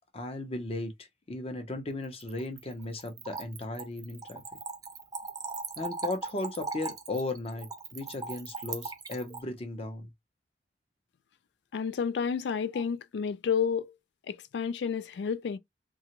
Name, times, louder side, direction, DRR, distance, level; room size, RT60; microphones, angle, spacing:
voice 1, 0.1-4.4 5.8-10.1, left 2 dB, 35° left, 0.7 m, -36 dB
Splash splatter / Trickle dribble, 2.0-9.4, right 4 dB, 20° right, 0.5 m, -39 dB
voice 2, 11.7-13.9 14.3-15.6, left 6 dB, 70° left, 0.3 m, -30 dB
2.8 x 2.3 x 2.9 m
head